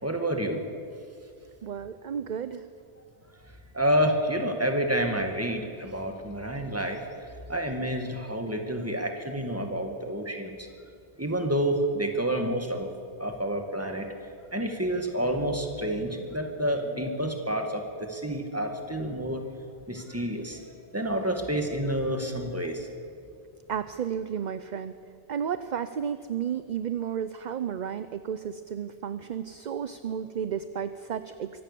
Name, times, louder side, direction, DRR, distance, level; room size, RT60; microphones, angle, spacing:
voice 1, 0.0-0.6 3.7-7.0 7.5-10.6 11.2-12.9 13.2-14.1 14.5-19.4 19.9-20.6 20.9-22.9, right 1 dB, 15° right, 4 dB, 2.1 m, -29 dB
voice 2, 1.6-2.6 23.7-24.9 25.3-31.5, right 8 dB, 50° right, 12 dB, 0.7 m, -32 dB
23.5 x 17.0 x 6.9 m, 2.4 s
omnidirectional pair, 1.1 m